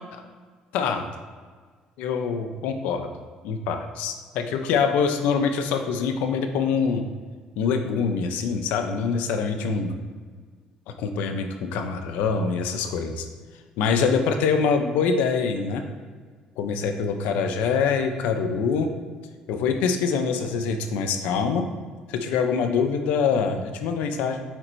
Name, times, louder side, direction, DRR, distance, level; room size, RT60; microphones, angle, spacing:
voice 1, 0.7-1.0 2.0-3.1 3.4-7.0 7.6-9.9 11.0-13.3 13.8-15.8 16.6-18.9 19.5-21.7 22.1-24.4, left 5 dB, 90° left, 6 dB, 0.6 m, -24 dB
8.8 x 4.3 x 2.7 m, 1.5 s
cardioid pair, 115°, 3 cm